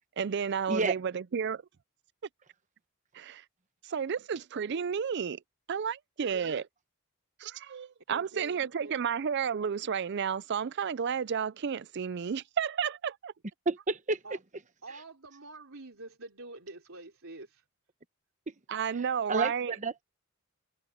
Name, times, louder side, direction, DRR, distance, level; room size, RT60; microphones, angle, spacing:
voice 1, 0.2-1.6 3.1-3.4 3.8-5.4 5.7-6.6 7.4-13.3 18.7-19.8, right 7 dB, 55° right, 0.4 m, -32 dB
voice 2, 8.1-9.0 14.2-14.4 14.8-17.6, right 2 dB, 75° right, 3.7 m, -47 dB
voice 3, 13.7-14.2 19.3-19.5 19.8-20.1, right 3 dB, 35° right, 1.0 m, -29 dB
head